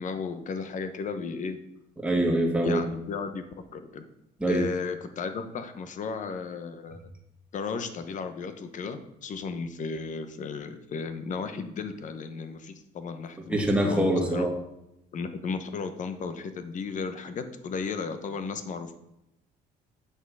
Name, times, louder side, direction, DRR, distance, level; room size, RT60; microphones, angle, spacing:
voice 1, 0.0-1.6 2.6-3.4 3.7-4.1 4.5-7.0 7.5-14.5 15.1-19.0, left 5 dB, 50° left, 9 dB, 1.0 m, -34 dB
voice 2, 2.0-2.8 4.4-4.6 13.5-14.5, right 1 dB, 5° right, 0 dB, 1.9 m, -24 dB
8.2 x 6.1 x 4.8 m, 0.85 s
cardioid pair, 110°, 17 cm